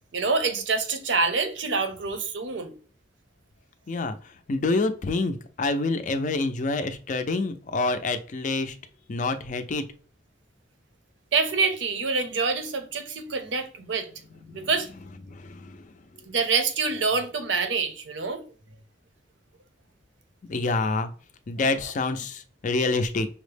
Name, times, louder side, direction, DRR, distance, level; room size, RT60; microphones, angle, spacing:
voice 1, 0.1-2.8 11.3-14.1 14.5-14.9 16.3-18.4, right 4 dB, 65° right, 0.7 m, -26 dB
voice 2, 3.9-8.7 9.1-9.9 14.5-14.7 15.3-15.9 20.5-21.1 21.5-23.3, left 3 dB, 40° left, 0.4 m, -27 dB
5.6 x 2.0 x 3.3 m
head